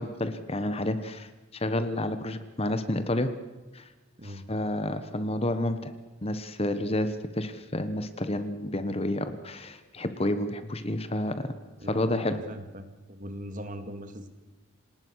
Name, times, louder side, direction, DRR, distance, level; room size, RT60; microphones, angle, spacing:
voice 1, 0.0-3.3 3.7-3.9 4.2-5.9 6.2-11.5 11.9-12.4, left 1 dB, 30° left, 11 dB, 1.2 m, -30 dB
voice 2, 11.8-14.3, equal, 40° right, 8 dB, 2.3 m, -40 dB
28.0 x 18.5 x 6.4 m, 1.2 s
head